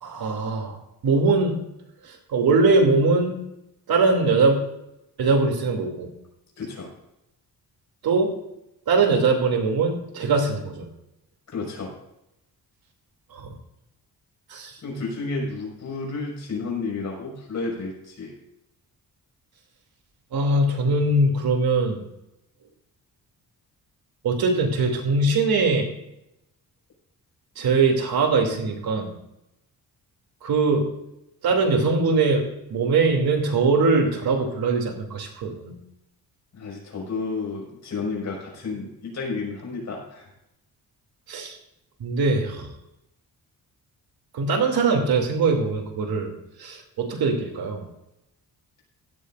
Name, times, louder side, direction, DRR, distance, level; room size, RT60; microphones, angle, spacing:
voice 1, 0.0-0.8 1.0-1.6 2.0-3.4 3.9-4.6 5.2-6.1 8.0-8.3 8.9-10.9 13.3-13.5 14.5-14.8 20.3-22.0 24.2-25.9 27.6-29.1 30.4-30.9 31.4-32.4 32.7-35.7 41.3-41.6 42.0-42.7 44.3-46.3 46.6-47.8, right 3 dB, 75° right, 2 dB, 2.9 m, -21 dB
voice 2, 6.6-6.9 11.5-11.9 14.8-18.3 36.5-40.3, left 3 dB, 50° left, -2 dB, 5.6 m, -31 dB
16.5 x 13.5 x 2.6 m, 0.86 s
wide cardioid pair, 165°, 37 cm